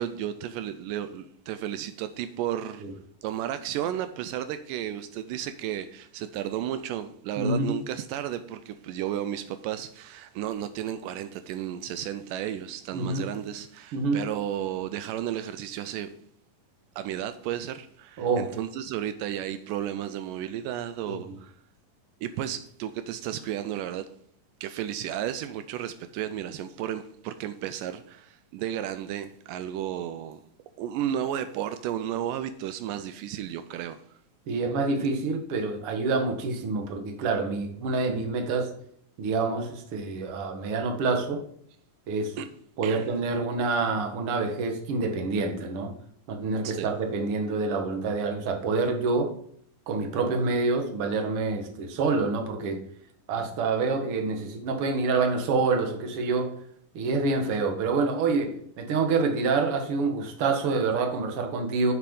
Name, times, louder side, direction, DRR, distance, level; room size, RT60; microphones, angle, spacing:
voice 1, 0.0-2.8 3.2-16.1 17.0-21.5 22.2-24.1 24.6-30.4 30.8-34.0 42.4-42.5 42.8-43.1 46.6-46.9, right 11 dB, 85° right, 2.2 m, -33 dB
voice 2, 7.4-7.8 12.9-13.3 13.9-14.2 18.2-18.5 21.1-21.3 34.5-38.7 39.2-41.4 42.1-42.4 42.8-45.9 46.3-49.3 49.9-52.8 53.3-56.5 56.9-61.9, right 3 dB, 50° right, 2.0 m, -27 dB
9.3 x 7.6 x 5.3 m
omnidirectional pair, 3.8 m